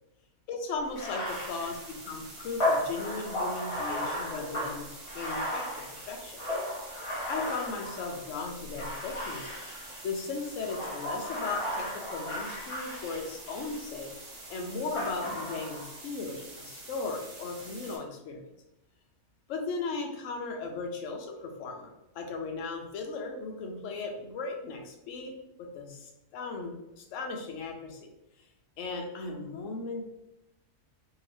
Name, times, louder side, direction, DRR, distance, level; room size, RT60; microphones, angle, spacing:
voice 1, 0.5-4.9 5.1-5.7 6.1-6.4 7.3-9.6 10.0-14.1 14.5-18.4 19.5-28.1 28.8-30.0, left 4 dB, 80° left, 2 dB, 0.9 m, -37 dB
Bathtub (filling or washing), 0.9-8.2 8.8-10.1 10.6-13.8 15.0-15.9, left 1 dB, 30° left, 0.7 m, -35 dB
sound 1, 1.2-18.0, right 2 dB, 40° right, 0.7 m, -47 dB
2.7 x 2.7 x 3.2 m, 0.89 s
omnidirectional pair, 1.3 m